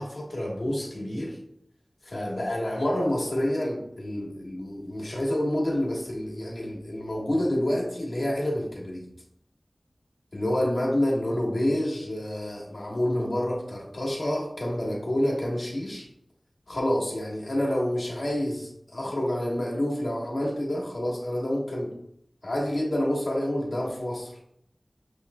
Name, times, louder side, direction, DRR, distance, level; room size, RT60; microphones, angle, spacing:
voice 1, 0.0-1.4 2.0-9.1 10.3-16.1 16.7-21.9 22.4-24.3, left 1 dB, 75° left, -3 dB, 1.3 m, -28 dB
7.0 x 3.1 x 2.3 m, 0.75 s
wide cardioid pair, 50°, 0 cm